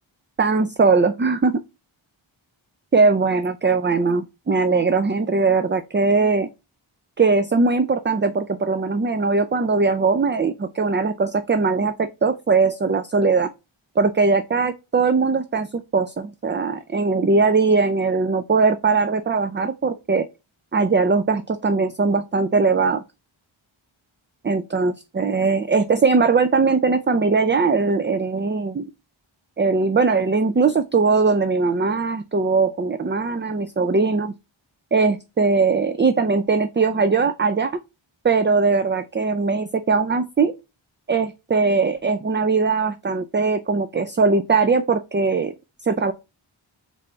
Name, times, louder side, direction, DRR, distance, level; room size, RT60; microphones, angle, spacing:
voice 1, 0.4-1.5 2.9-6.5 7.2-13.5 14.0-20.3 20.7-23.0 24.4-28.9 29.6-34.3 34.9-37.7 38.2-40.5 41.1-45.5 45.8-46.1, right 4 dB, 25° right, 0.4 m, -20 dB
3.4 x 3.4 x 3.8 m
wide cardioid pair, 45°, 49 cm